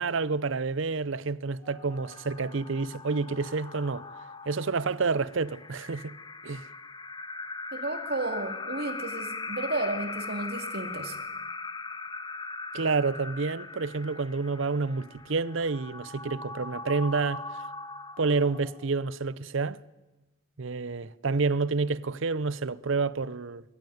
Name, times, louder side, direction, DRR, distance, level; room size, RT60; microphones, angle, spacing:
voice 1, 0.0-4.0 4.5-6.1 6.4-6.7 12.7-17.4 18.2-19.8 20.6-23.6, right 4 dB, 65° right, 0.6 m, -29 dB
sound 1, 1.6-19.0, left 3 dB, 20° left, 1.0 m, -40 dB
voice 2, 7.7-11.1, right 2 dB, 45° right, 2.4 m, -33 dB
21.5 x 14.5 x 9.4 m
head